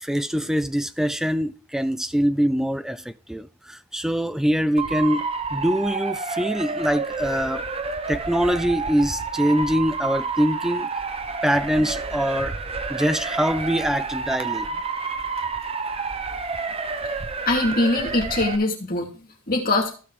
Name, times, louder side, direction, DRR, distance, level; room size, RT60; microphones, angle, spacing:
voice 1, 0.0-3.0 3.3-7.6 8.1-10.9 11.4-12.5 12.9-14.7, equal, ahead, 0.4 m, -23 dB
Motor vehicle (road) / Siren, 4.8-18.6, right 4 dB, 25° right, 0.7 m, -29 dB
voice 2, 17.5-20.0, left 2 dB, 40° left, 2.7 m, -23 dB
15.0 x 5.7 x 3.4 m
head